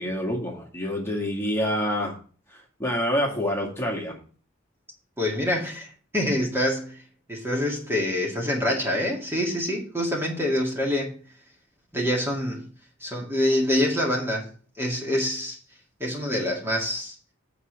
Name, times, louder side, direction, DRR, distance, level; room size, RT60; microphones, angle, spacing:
voice 1, 0.0-2.2 2.5-4.2, equal, 15° left, 2.1 m, -27 dB
voice 2, 5.2-5.9 6.1-7.0 7.3-11.2 11.9-12.7 13.0-14.5 14.8-15.6 16.0-17.2, left 1 dB, 10° right, 2.1 m, -26 dB
8.5 x 5.0 x 6.6 m
head